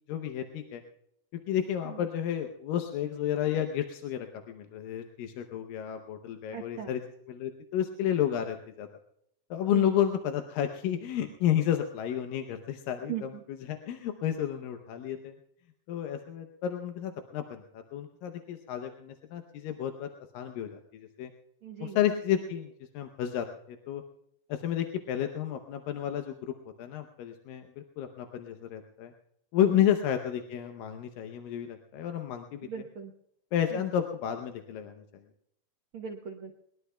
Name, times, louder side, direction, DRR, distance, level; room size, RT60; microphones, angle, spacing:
voice 1, 0.1-0.8 1.5-7.0 7.3-8.9 9.5-15.4 15.9-21.3 21.8-24.0 24.5-29.1 29.5-32.7 33.5-35.0, left 10 dB, 85° left, 6 dB, 2.6 m, -31 dB
voice 2, 6.5-6.9 9.7-9.9 13.1-13.2 21.6-22.0 32.7-33.1 33.7-33.9 35.9-36.5, right 8 dB, 70° right, 2 dB, 1.2 m, -38 dB
21.5 x 20.5 x 2.2 m, 0.76 s
omnidirectional pair, 3.9 m